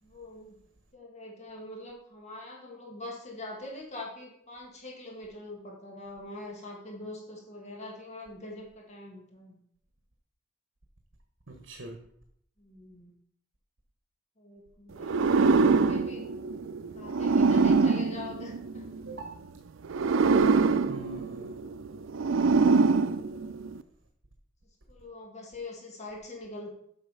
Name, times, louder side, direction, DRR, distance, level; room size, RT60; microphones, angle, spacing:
voice 1, 0.0-0.6 0.9-9.6 12.6-13.1 14.4-15.1 15.6-16.3 16.9-19.0 24.9-26.7, left 2 dB, 35° left, -1 dB, 1.8 m, -43 dB
voice 2, 11.5-11.9 15.2-15.9 19.1-19.6 20.9-21.6, right 2 dB, 70° right, 4 dB, 1.3 m, -43 dB
sound 1, 15.0-19.1 19.8-23.8, right 4 dB, 85° right, 0.5 m, -24 dB
8.0 x 5.8 x 5.5 m, 0.69 s
head